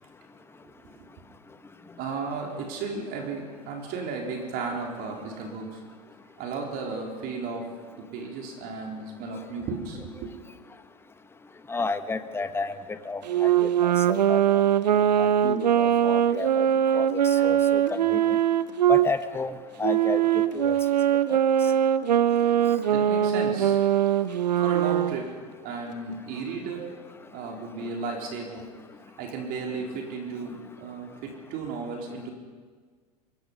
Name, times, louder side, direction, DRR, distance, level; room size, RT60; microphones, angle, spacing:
voice 1, 2.0-5.8 6.4-7.6 8.0-10.3 22.4-22.5 22.9-23.9 24.6-25.3 25.6-26.9 27.3-28.6 29.2-32.3, right 4 dB, 45° right, 0 dB, 4.2 m, -34 dB
voice 2, 11.7-12.7 13.1-14.6 15.2-16.7 16.9-17.1 17.4-18.2 18.9-19.5 19.8-20.2 20.5-20.8 24.6-24.7, left 4 dB, 10° left, 10 dB, 1.2 m, -31 dB
Wind instrument woodwind instrument, 13.3-19.1 19.8-25.2, right 10 dB, 80° right, 0.8 m, -22 dB
26.0 x 21.0 x 5.6 m, 1.5 s
hypercardioid pair, 95°, 21 cm